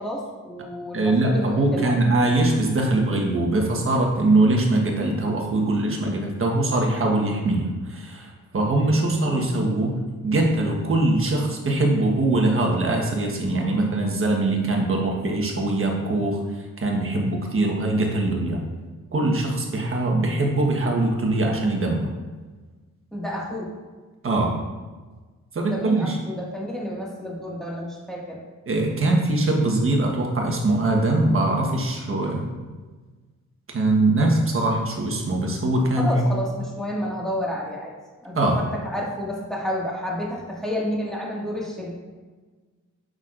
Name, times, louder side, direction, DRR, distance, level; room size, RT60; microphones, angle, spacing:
voice 1, 0.0-2.0 9.1-9.6 23.1-23.7 25.7-28.4 36.0-37.9 38.2-41.9, left 1 dB, ahead, -5 dB, 1.9 m, -30 dB
voice 2, 0.9-16.4 16.8-18.6 19.1-22.1 24.2-24.6 25.5-26.2 28.7-32.5 33.7-36.2 38.3-38.6, right 2 dB, 45° right, 1 dB, 1.3 m, -22 dB
8.2 x 6.4 x 2.5 m, 1.3 s
wide cardioid pair, 115°, 30 cm